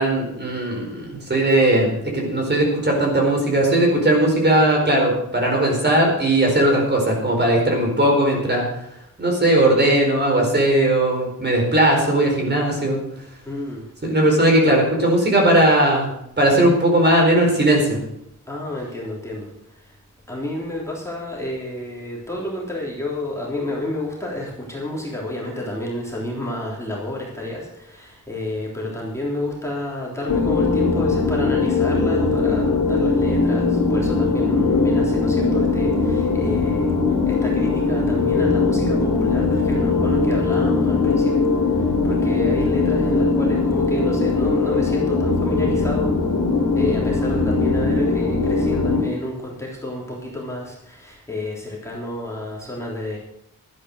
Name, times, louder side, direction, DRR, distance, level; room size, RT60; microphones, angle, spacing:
voice 1, 0.0-8.6 9.2-13.0 14.0-16.1 16.4-18.0, right 1 dB, 30° right, 0 dB, 4.4 m, -18 dB
voice 2, 13.4-13.9 18.5-19.5 20.3-37.0 37.3-41.4 41.7-46.2 46.7-53.2, left 1 dB, 10° left, -5 dB, 3.5 m, -30 dB
sound 1, 30.3-49.0, left 3 dB, 75° left, 2.8 m, -20 dB
12.0 x 9.8 x 6.5 m, 0.80 s
wide cardioid pair, 120°, 33 cm